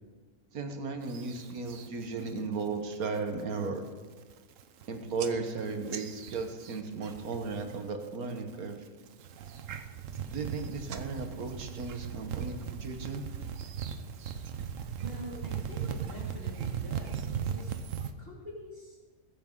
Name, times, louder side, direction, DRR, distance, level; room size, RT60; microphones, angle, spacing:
voice 1, 0.5-3.8 4.9-8.8 10.3-13.2, right 4 dB, 85° right, 6 dB, 1.7 m, -35 dB
sound 1, 1.1-1.9 2.3-2.7 3.0-3.4 3.9-4.0 4.2-4.9 5.2-7.8 8.0-8.5 9.1-18.1, right 7 dB, 65° right, 1.1 m, -38 dB
voice 2, 15.0-19.0, equal, 40° right, -3 dB, 2.7 m, -46 dB
21.5 x 9.4 x 3.8 m, 1.4 s
omnidirectional pair, 1.5 m